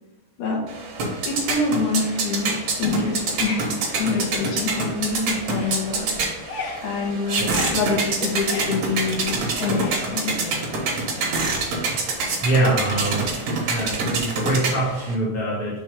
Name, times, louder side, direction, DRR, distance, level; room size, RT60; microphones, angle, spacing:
sound 1, 0.7-15.1, right 3 dB, 60° right, 1.8 m, -26 dB
voice 1, 1.3-6.1 6.8-10.4, left 4 dB, 65° left, -2 dB, 2.3 m, -26 dB
sound 2, 2.8-3.4 3.8-5.1 5.4-11.9, left 5 dB, 90° left, 3.0 m, -36 dB
voice 2, 11.6-13.3 13.6-15.8, right 2 dB, 40° left, -8 dB, 1.3 m, -24 dB
5.9 x 4.4 x 4.9 m, 1.1 s
omnidirectional pair, 4.7 m